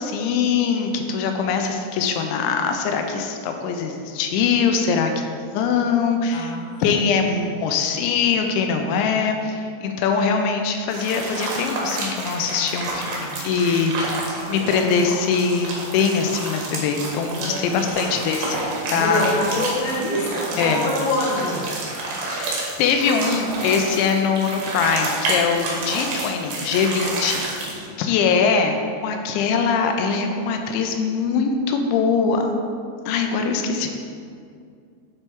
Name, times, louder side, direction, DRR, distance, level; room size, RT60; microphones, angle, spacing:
voice 1, 0.0-5.1 5.5-6.5 6.8-18.6 18.9-19.3 20.6-20.9 22.3-28.8 29.0-32.6 33.1-33.9, left 5 dB, 85° left, 4 dB, 3.0 m, -22 dB
voice 2, 6.3-7.2 12.8-13.4 17.4-18.0 18.9-21.6 33.6-33.7, left 1 dB, 55° left, -5 dB, 2.0 m, -26 dB
sound 1, 10.9-27.9, right 2 dB, 70° right, 3.4 m, -29 dB
9.5 x 4.4 x 4.5 m, 2.3 s
omnidirectional pair, 5.3 m